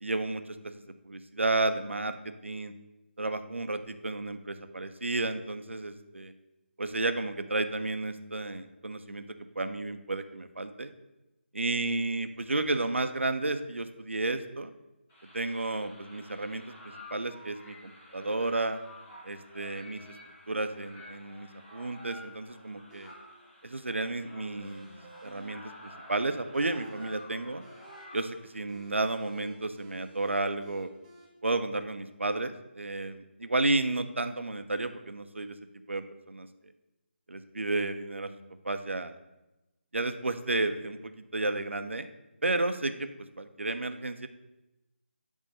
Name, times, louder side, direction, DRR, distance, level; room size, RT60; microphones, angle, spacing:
voice 1, 0.0-0.7 1.0-2.7 3.2-6.3 6.8-10.9 11.5-14.7 15.3-16.6 17.1-18.8 19.2-20.0 20.5-23.1 23.6-24.9 25.2-27.6 28.1-30.9 31.4-35.5 35.9-36.5 37.3-38.3 38.6-39.1 39.9-42.1 42.4-43.1 43.4-44.3, right 2 dB, 75° right, 9 dB, 0.8 m, -32 dB
sound 1, 15.1-28.6, left 1 dB, 15° left, 2.2 m, -51 dB
sound 2, 22.9-31.2, right 2 dB, 10° right, 1.0 m, -55 dB
10.0 x 3.7 x 6.6 m, 1.0 s
figure-of-eight pair, 155°, 7 cm